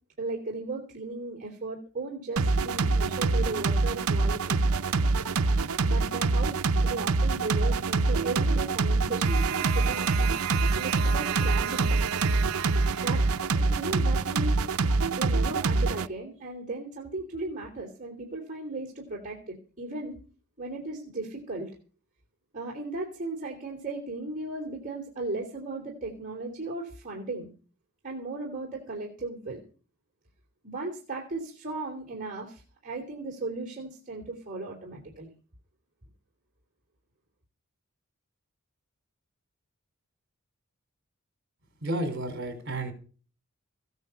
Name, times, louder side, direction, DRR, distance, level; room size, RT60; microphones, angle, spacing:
voice 1, 0.2-4.6 5.8-10.3 10.7-12.0 13.0-13.2 13.5-14.6 15.1-20.2 20.6-21.7 22.5-27.5 28.0-29.6 30.6-35.3, right 2 dB, 40° right, -1 dB, 3.2 m, -36 dB
sound 1, 2.4-16.1, right 3 dB, 80° right, 0.7 m, -25 dB
voice 2, 41.8-42.9, right 1 dB, 55° right, 6 dB, 5.1 m, -31 dB
16.0 x 9.6 x 7.0 m, 0.39 s
head